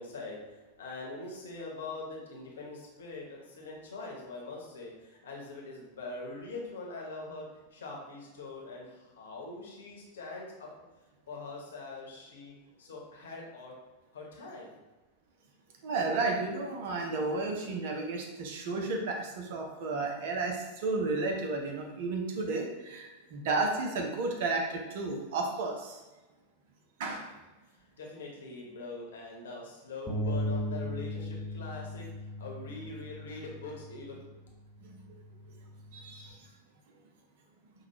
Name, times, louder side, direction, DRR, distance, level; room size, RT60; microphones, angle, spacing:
voice 1, 0.0-10.7 11.3-12.5 12.8-13.7 14.1-14.8 27.7-34.2, left 3 dB, 65° left, -1 dB, 1.0 m, -43 dB
voice 2, 15.8-26.0 27.0-27.3 34.8-35.2 35.9-36.5, right 3 dB, 55° right, 2 dB, 0.7 m, -33 dB
sound 1, 30.1-36.3, left 1 dB, 10° left, 1.0 m, -38 dB
5.7 x 2.3 x 3.0 m, 1.1 s
figure-of-eight pair, 90°, 0 cm